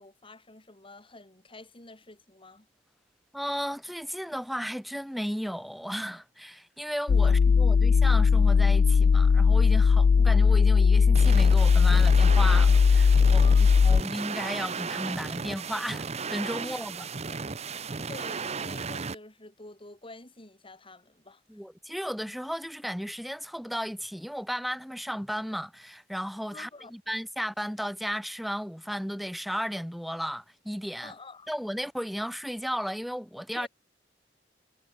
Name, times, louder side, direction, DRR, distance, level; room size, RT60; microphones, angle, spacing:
voice 1, 0.0-2.7 7.2-7.3 13.3-13.8 16.6-16.8 17.3-17.4 18.1-21.4 26.5-26.9 31.0-31.5 33.5-33.7, left 2 dB, 30° left, 4.8 m, -48 dB
voice 2, 3.3-17.1 21.5-31.1 31.5-33.7, equal, ahead, 2.5 m, -34 dB
sound 1, 7.1-14.0, left 5 dB, 60° left, 0.3 m, -19 dB
sound 2, 11.1-19.1, right 5 dB, 35° right, 0.9 m, -35 dB
head